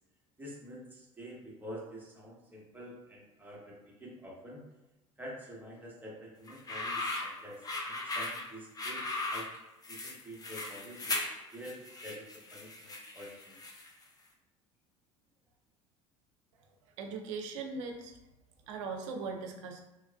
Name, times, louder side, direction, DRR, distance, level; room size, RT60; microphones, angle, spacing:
voice 1, 0.4-4.6 5.2-9.0 9.3-9.5 9.9-11.2 11.5-13.6, equal, 10° right, -4 dB, 1.1 m, -47 dB
sound 1, 6.5-14.0, left 2 dB, 25° left, 0.5 m, -38 dB
voice 2, 17.0-18.1 18.7-19.8, right 4 dB, 75° right, 3 dB, 0.5 m, -39 dB
3.2 x 2.3 x 2.2 m, 1.0 s
hypercardioid pair, 70°, 16 cm